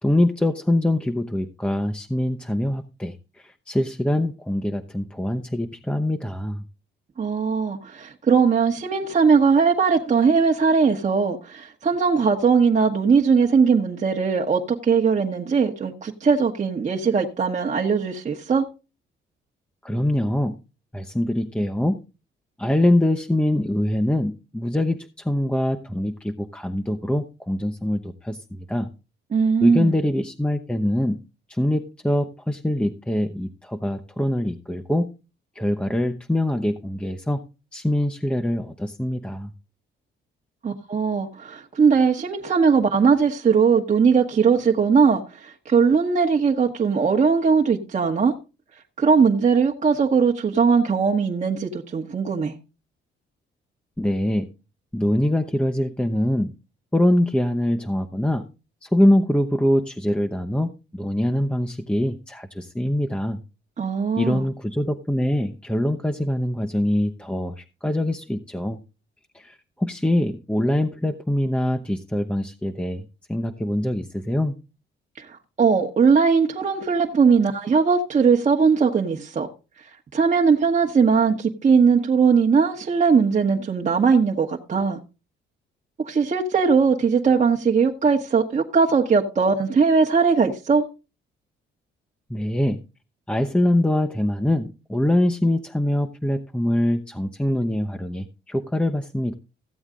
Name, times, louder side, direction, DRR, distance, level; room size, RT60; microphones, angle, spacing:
voice 1, 0.0-6.6 19.8-20.6 20.9-22.0 22.6-28.9 29.6-31.2 31.5-35.1 35.5-37.4 37.7-39.5 54.0-54.5 54.9-56.5 56.9-58.5 58.8-63.4 64.2-68.8 69.3-74.6 92.3-92.8 93.3-99.3, left 1 dB, 5° left, 0.8 m, -23 dB
voice 2, 7.2-18.7 29.3-29.9 40.6-48.3 49.0-52.6 63.8-64.5 75.2-79.5 80.1-85.0 86.0-90.8, right 5 dB, 35° right, 1.2 m, -19 dB
15.0 x 7.9 x 3.7 m
cardioid pair, 90°, 20 cm